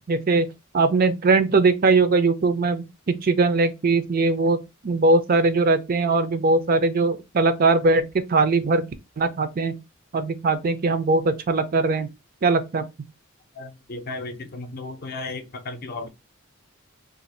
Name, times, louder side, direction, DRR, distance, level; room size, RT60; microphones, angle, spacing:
voice 1, 0.1-0.5 0.7-8.0 8.3-8.8 9.2-9.7 10.1-12.1 12.4-12.8, right 3 dB, 45° right, 0.5 m, -20 dB
voice 2, 13.6-16.1, left 3 dB, 45° left, 0.6 m, -34 dB
2.6 x 2.4 x 4.1 m
head